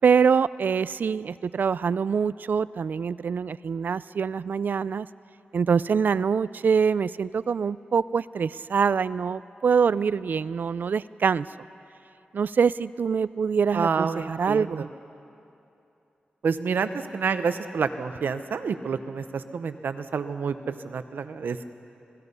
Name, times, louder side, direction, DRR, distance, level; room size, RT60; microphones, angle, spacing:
voice 1, 0.0-5.1 5.5-11.5 12.3-14.9, right 6 dB, 70° right, 18 dB, 0.4 m, -24 dB
voice 2, 13.7-14.9 16.4-21.7, right 5 dB, 85° right, 10 dB, 0.9 m, -28 dB
26.5 x 19.5 x 5.5 m, 2.8 s
wide cardioid pair, 100°, 3 cm